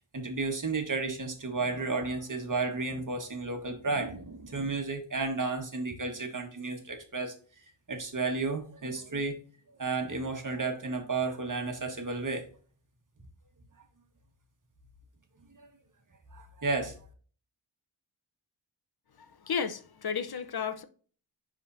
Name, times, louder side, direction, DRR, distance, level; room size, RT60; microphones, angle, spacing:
voice 1, 0.0-7.3 7.9-9.4 9.8-12.4 15.6-15.7 16.3-17.0, right 3 dB, 40° right, 1.5 m, -32 dB
voice 2, 19.2-20.8, left 6 dB, 55° left, 0.8 m, -33 dB
10.5 x 3.7 x 2.7 m
cardioid pair, 60°, 46 cm